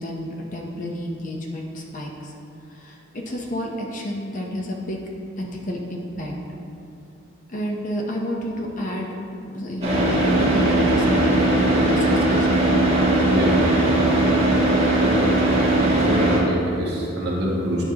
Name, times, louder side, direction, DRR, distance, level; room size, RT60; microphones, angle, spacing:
voice 1, 0.0-2.3 2.7-5.0 5.4-6.4 7.5-9.1 9.4-11.1 11.3-12.9, equal, 35° left, 0 dB, 0.6 m, -30 dB
Car / Idling, 9.8-16.4, right 1 dB, 30° right, 1.2 m, -19 dB
voice 2, 13.3-13.6 14.9-15.1 15.8-17.8, equal, 50° right, -5 dB, 1.4 m, -26 dB
9.5 x 5.3 x 2.8 m, 2.6 s
head